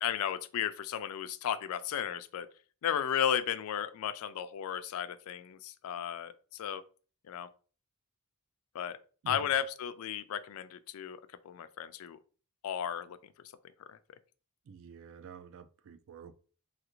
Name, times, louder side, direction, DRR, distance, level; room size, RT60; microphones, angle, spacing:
voice 1, 0.0-2.5 2.8-6.8 7.3-7.5 8.7-9.0 9.3-12.2 12.6-13.2 13.9-14.0, left 9 dB, 65° left, 0.3 m, -34 dB
voice 2, 9.2-9.5 14.7-16.4, right 6 dB, 65° right, 0.3 m, -48 dB
3.4 x 2.4 x 2.9 m
head